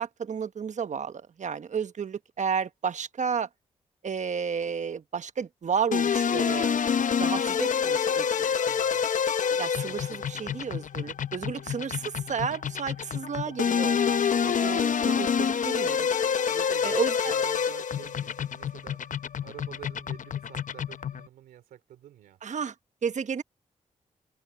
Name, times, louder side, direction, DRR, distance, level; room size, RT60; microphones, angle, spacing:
voice 1, 0.0-3.5 4.0-6.8 7.2-8.8 9.6-16.2 16.8-17.3 22.4-22.7 23.0-23.4, right 6 dB, 60° right, 1.2 m, -32 dB
sound 1, 5.9-21.3, left 7 dB, 65° left, 0.9 m, -27 dB
voice 2, 8.6-9.1 16.5-17.0 17.2-22.4, right 12 dB, 90° right, 3.5 m, -48 dB
supercardioid pair, 40°, 14 cm